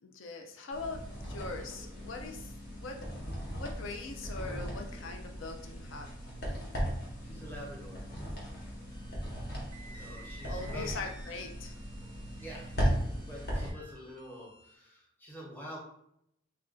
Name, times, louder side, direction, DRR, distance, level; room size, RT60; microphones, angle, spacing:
voice 1, 0.0-3.0 3.6-6.1 10.5-11.8, left 3 dB, 70° left, 3 dB, 0.4 m, -41 dB
sound 1, 0.7-13.7, equal, 50° left, 1.1 m, -37 dB
voice 2, 7.2-8.1 8.4-8.6 9.5-11.0 12.0-13.0 13.3-15.8, equal, 10° left, -4 dB, 0.8 m, -48 dB
sound 2, 8.9-14.7, right 2 dB, 25° right, 0.5 m, -56 dB
3.2 x 2.5 x 3.7 m, 0.74 s
head